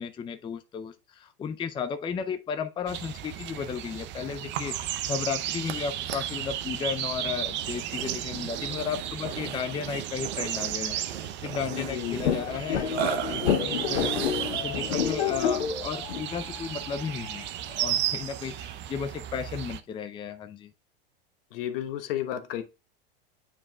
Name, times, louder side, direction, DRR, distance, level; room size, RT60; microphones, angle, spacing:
voice 1, 0.0-14.1 14.5-20.7, left 7 dB, 15° left, 0.5 m, -34 dB
sound 1, 2.9-19.8, right 12 dB, 35° right, 0.6 m, -34 dB
Burping eructation, 4.5-15.2, right 10 dB, 80° right, 0.9 m, -38 dB
voice 2, 11.7-12.3 21.5-22.6, left 11 dB, 65° left, 1.1 m, -32 dB
sound 2, 12.2-17.4, left 8 dB, 90° left, 0.9 m, -29 dB
8.8 x 4.9 x 2.3 m
hypercardioid pair, 110°, 31 cm